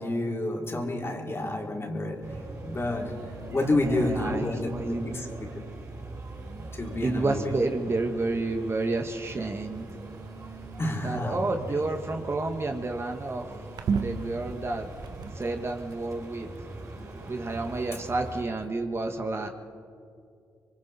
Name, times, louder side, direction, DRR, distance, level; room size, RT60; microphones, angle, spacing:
voice 1, 0.0-5.5 6.7-7.5 10.8-11.4, left 1 dB, 35° left, 0 dB, 3.9 m, -29 dB
sound 1, 0.7-1.0 2.7-4.5 5.5-5.6 6.3-8.0 8.5-9.0 9.7-15.8 16.6-18.7, right 5 dB, 70° right, 1.3 m, -40 dB
sound 2, 2.2-18.4, right 2 dB, 50° right, 6.2 m, -42 dB
voice 2, 3.8-5.2 7.0-9.9 11.0-13.5 13.9-14.9 15.4-16.5 17.3-19.5, right 2 dB, 35° right, 4 dB, 1.8 m, -30 dB
26.0 x 23.0 x 4.5 m, 2.4 s
supercardioid pair, 55°, 7 cm